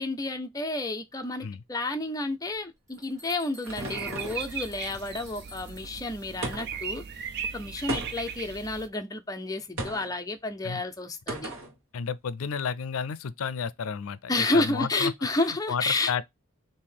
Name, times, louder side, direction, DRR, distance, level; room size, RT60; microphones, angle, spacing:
voice 1, 0.0-7.0 7.5-11.5 14.3-16.1, left 2 dB, 15° left, 0.5 m, -30 dB
sound 1, 2.5-6.0, left 1 dB, 15° right, 1.5 m, -51 dB
sound 2, 3.0-4.5 6.4-6.9 7.9-8.4 9.8-10.2 11.3-11.7, right 2 dB, 80° right, 1.3 m, -36 dB
sound 3, 3.7-8.9, right 7 dB, 50° right, 0.4 m, -38 dB
voice 2, 11.9-15.1 15.5-16.2, left 6 dB, 75° left, 0.4 m, -32 dB
3.6 x 2.7 x 4.5 m
head